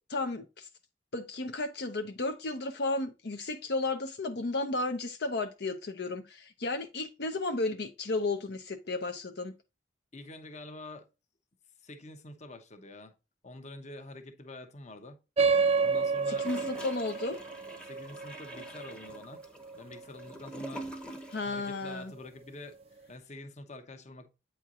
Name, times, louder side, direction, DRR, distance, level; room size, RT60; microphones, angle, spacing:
voice 1, 0.1-0.7 1.1-9.5 16.3-17.4 21.3-22.1, left 2 dB, 65° left, 0.7 m, -33 dB
voice 2, 10.1-11.1 11.8-13.1 13.4-15.2 15.8-16.5 17.8-19.4 19.7-20.9 21.5-22.8 23.1-24.3, left 2 dB, 40° left, 0.9 m, -46 dB
sound 1, 15.4-20.3, right 5 dB, 35° right, 0.4 m, -30 dB
Gurgling / Toilet flush, 15.5-21.6 21.9-22.0, right 1 dB, 5° left, 0.8 m, -45 dB
8.5 x 4.5 x 2.4 m
head